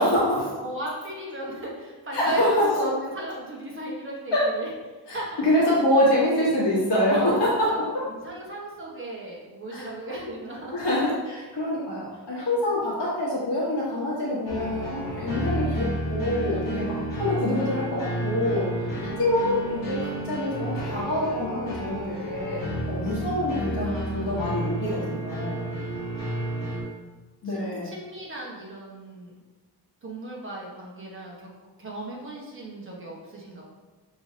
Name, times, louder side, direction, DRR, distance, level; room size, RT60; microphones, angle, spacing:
voice 1, 0.0-0.6 2.1-2.7 4.3-4.5 5.1-8.0 9.7-9.9 10.7-18.7 19.0-22.6 22.9-25.6 27.4-27.9, left 1 dB, 80° left, -7 dB, 1.2 m, -25 dB
voice 2, 0.6-4.7 5.1-5.4 7.2-10.8 16.5-17.0 21.7-22.3 23.8-24.6 25.8-26.1 27.4-29.4 30.0-31.5 31.8-33.6, right 1 dB, 30° right, -4 dB, 1.1 m, -36 dB
sound 1, 14.5-26.8, right 1 dB, 55° left, 1.2 m, -31 dB
5.8 x 3.1 x 2.7 m, 1.2 s
wide cardioid pair, 160°, 41 cm